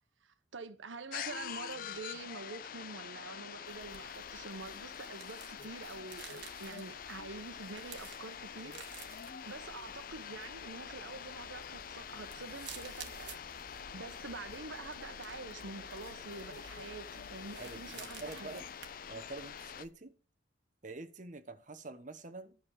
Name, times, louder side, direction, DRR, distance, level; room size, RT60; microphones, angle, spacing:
voice 1, 0.2-8.7 9.4-13.3 13.9-18.7, right 3 dB, 85° right, 1.1 m, -46 dB
sound 1, 1.1-19.9, left 8 dB, 45° left, 0.4 m, -46 dB
sound 2, 3.6-19.9, right 6 dB, 60° right, 1.6 m, -54 dB
voice 2, 17.6-18.7 19.1-20.1 20.8-22.5, right 2 dB, 40° right, 1.2 m, -46 dB
12.0 x 6.4 x 6.7 m
head